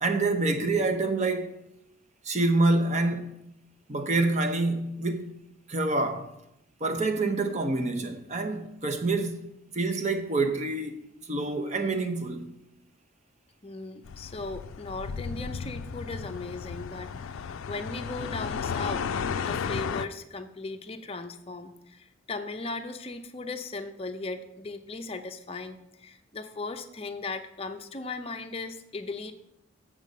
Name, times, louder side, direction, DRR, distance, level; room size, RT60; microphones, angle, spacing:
voice 1, 0.0-1.6 2.2-3.3 3.9-5.4 5.7-6.3 6.8-9.5 9.7-12.5, right 2 dB, 35° right, 0.7 m, -27 dB
voice 2, 13.6-19.1 19.4-29.3, left 3 dB, 30° left, 0.6 m, -37 dB
sound 1, 14.0-20.1, left 6 dB, 80° left, 0.4 m, -34 dB
7.3 x 5.1 x 6.8 m
head